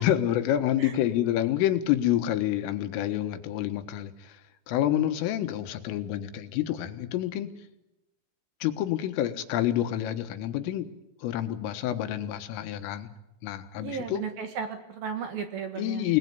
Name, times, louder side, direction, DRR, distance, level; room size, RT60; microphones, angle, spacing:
voice 1, 0.0-4.3 4.7-7.5 8.6-10.9 11.2-13.1 13.4-14.2 15.8-16.2, left 12 dB, 85° left, 8 dB, 4.0 m, -28 dB
voice 2, 13.8-16.1, right 6 dB, 60° right, 7 dB, 2.7 m, -35 dB
27.5 x 19.0 x 9.6 m, 0.90 s
omnidirectional pair, 5.8 m